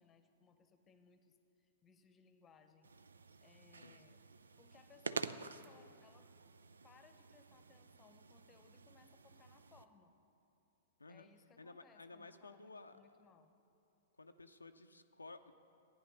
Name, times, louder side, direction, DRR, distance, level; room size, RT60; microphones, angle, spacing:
voice 1, 0.0-2.9 3.4-4.2 4.6-6.3 6.8-10.1 11.1-13.5, left 5 dB, 20° left, 9 dB, 0.9 m, -66 dB
sound 1, 2.8-9.8, right 4 dB, 75° right, 0.4 m, -49 dB
voice 2, 3.7-4.1 11.0-11.3 11.6-13.2 14.2-15.5, left 3 dB, 85° left, 7 dB, 0.5 m, -55 dB
14.5 x 9.4 x 5.6 m, 2.7 s
figure-of-eight pair, 105°, 0 cm